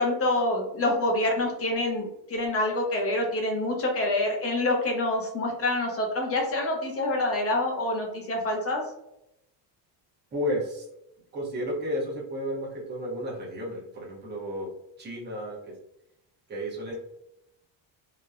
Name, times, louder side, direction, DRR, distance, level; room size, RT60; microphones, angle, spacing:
voice 1, 0.0-8.8, left 2 dB, 30° left, 0 dB, 0.6 m, -26 dB
voice 2, 10.3-10.9 11.3-14.7 15.0-15.7 16.5-16.9, equal, 20° right, -4 dB, 0.8 m, -32 dB
2.9 x 2.1 x 2.4 m, 0.82 s
cardioid pair, 145°, 47 cm